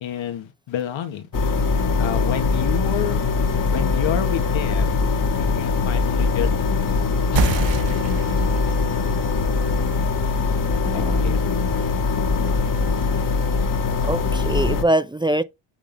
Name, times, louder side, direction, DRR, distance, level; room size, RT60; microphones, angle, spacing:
voice 1, 0.0-1.3 2.0-3.2 3.7-5.0 5.4-6.5 7.3-7.6 10.9-11.7, left 10 dB, 70° left, 2.0 m, -29 dB
sound 1, 1.3-14.8, left 4 dB, 40° left, 1.9 m, -22 dB
sound 2, 7.4-12.5, right 4 dB, 65° right, 1.6 m, -29 dB
voice 2, 10.8-11.4 14.0-15.4, right 1 dB, 10° right, 0.7 m, -23 dB
8.4 x 3.6 x 5.4 m
cardioid pair, 90°, 48 cm